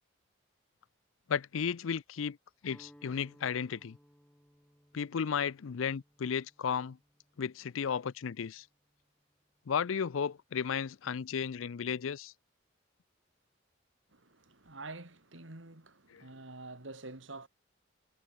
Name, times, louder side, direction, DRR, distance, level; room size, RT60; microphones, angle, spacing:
voice 1, 1.3-2.4 2.6-4.0 4.9-7.0 7.4-8.6 9.7-12.3, left 7 dB, 90° left, 0.5 m, -34 dB
Guitar, 2.6-8.7, equal, 5° left, 3.9 m, -62 dB
voice 2, 14.1-17.5, right 2 dB, 75° right, 3.0 m, -47 dB
head